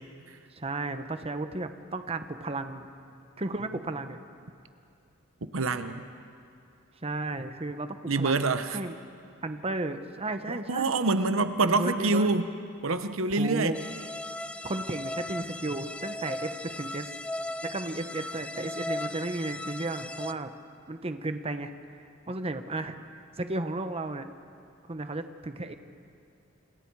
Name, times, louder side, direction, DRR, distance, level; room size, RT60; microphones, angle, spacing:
voice 1, 0.5-2.9 3.4-4.2 7.0-8.9 9.4-10.9 11.6-12.3 13.4-13.8 14.6-17.1 17.6-20.5 20.9-23.0 23.4-24.3 24.9-25.7, right 2 dB, 30° right, 8 dB, 1.0 m, -34 dB
voice 2, 5.5-6.0 8.1-8.8 10.5-12.4 12.8-13.7, right 3 dB, 75° right, 10 dB, 1.0 m, -26 dB
sound 1, 13.7-20.3, left 1 dB, 5° left, 0.5 m, -37 dB
29.5 x 28.0 x 4.8 m, 2.5 s
head